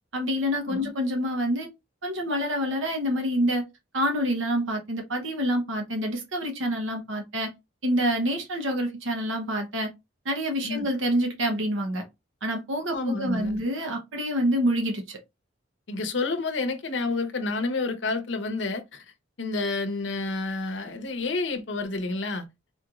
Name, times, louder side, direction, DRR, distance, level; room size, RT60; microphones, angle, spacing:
voice 1, 0.1-1.7 2.0-3.6 3.9-7.5 7.8-9.9 10.2-12.0 12.4-15.2, equal, 85° right, 1.0 m, -27 dB
voice 2, 12.9-13.6 15.9-19.0 19.4-22.5, left 3 dB, 70° left, 0.7 m, -29 dB
4.2 x 3.0 x 2.4 m
head